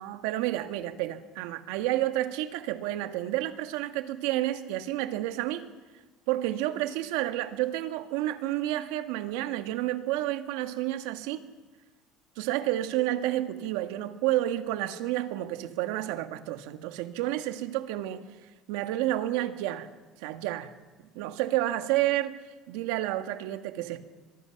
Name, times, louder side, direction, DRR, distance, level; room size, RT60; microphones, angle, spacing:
voice 1, 0.0-5.7 6.3-11.4 12.4-18.2 18.7-19.9 20.2-20.7 21.1-24.0, right 14 dB, 85° right, 1.6 m, -30 dB
25.0 x 23.0 x 5.9 m
cardioid pair, 130°, 0 cm